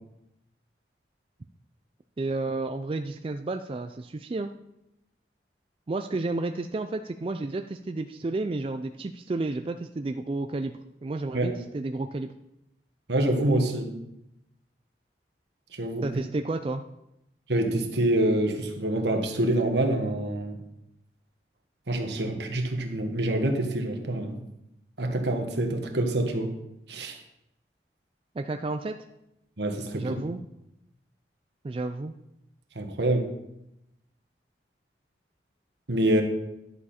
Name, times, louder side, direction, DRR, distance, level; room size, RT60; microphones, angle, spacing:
voice 1, 2.2-4.5 5.9-10.7 11.0-12.3 16.0-16.8 28.4-28.9 29.9-30.4 31.6-32.1, right 2 dB, 30° right, 6 dB, 0.3 m, -31 dB
voice 2, 13.1-13.9 15.7-16.2 17.5-20.6 21.9-24.4 25.0-26.5 26.9-27.2 29.6-30.2 32.7-33.3 35.9-36.2, right 1 dB, 75° right, 3 dB, 1.4 m, -26 dB
11.0 x 7.1 x 4.3 m, 0.86 s
head